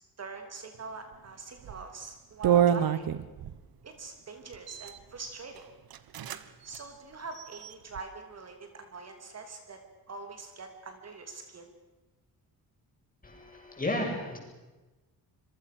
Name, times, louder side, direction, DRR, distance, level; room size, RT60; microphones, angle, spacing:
voice 1, 0.2-3.0 3.8-5.6 6.6-9.8 10.1-11.7, right 4 dB, 40° right, 6 dB, 3.0 m, -43 dB
sound 1, 1.6-1.8 2.4-3.6 4.5-5.0 5.6-5.7 5.9-6.4 6.7-6.8 7.3-8.0, right 9 dB, 70° right, 1.4 m, -27 dB
voice 2, 13.2-14.4, left 1 dB, 20° left, 1 dB, 7.8 m, -33 dB
26.5 x 23.0 x 6.8 m, 1.1 s
cardioid pair, 130°, 37 cm